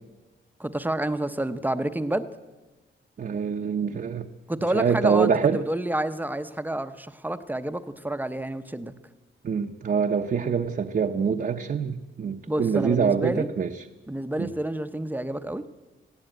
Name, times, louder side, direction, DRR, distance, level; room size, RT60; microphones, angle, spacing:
voice 1, 0.6-2.3 4.5-8.9 12.5-13.5 14.1-15.8, right 1 dB, 10° right, 10 dB, 0.7 m, -29 dB
voice 2, 3.2-4.3 4.7-5.6 9.4-13.7 14.4-14.5, right 6 dB, 45° right, 4 dB, 0.7 m, -25 dB
19.0 x 15.5 x 9.3 m, 1.2 s
wide cardioid pair, 150°, 21 cm